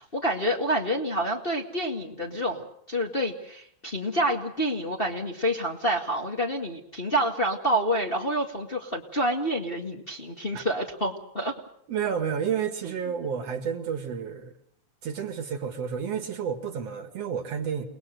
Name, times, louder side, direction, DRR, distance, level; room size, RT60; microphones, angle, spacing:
voice 1, 0.0-11.5, equal, 20° left, 1 dB, 1.8 m, -28 dB
voice 2, 11.9-14.5 15.0-17.9, right 7 dB, 60° right, 8 dB, 2.7 m, -30 dB
29.0 x 20.0 x 6.6 m, 0.69 s
omnidirectional pair, 3.3 m